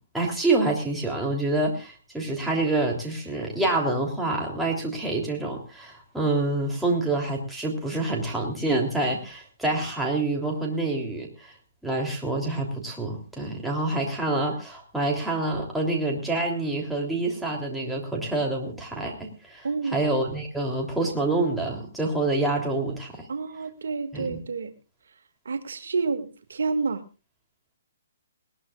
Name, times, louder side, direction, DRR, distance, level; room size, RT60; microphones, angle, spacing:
voice 1, 0.1-11.5 11.8-23.2 24.1-24.4, right 2 dB, ahead, -2 dB, 3.3 m, -27 dB
voice 2, 19.6-20.0 23.3-24.7 25.5-27.0, right 4 dB, 75° right, 7 dB, 2.1 m, -29 dB
20.0 x 19.0 x 2.5 m, 0.32 s
hypercardioid pair, 160°, 0 cm